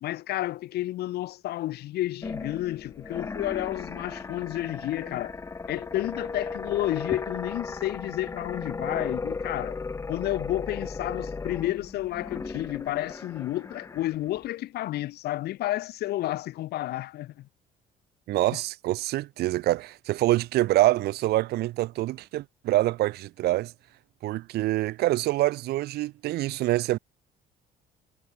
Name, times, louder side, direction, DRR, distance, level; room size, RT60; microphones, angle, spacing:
voice 1, 0.0-5.3 5.7-9.8 10.1-17.5, left 15 dB, 75° left, 1.8 m, -31 dB
sound 1, 2.2-14.5, left 4 dB, 15° left, 0.6 m, -36 dB
voice 2, 18.3-23.7 24.2-27.0, right 16 dB, 70° right, 0.7 m, -25 dB
cardioid pair, 110°, 17 cm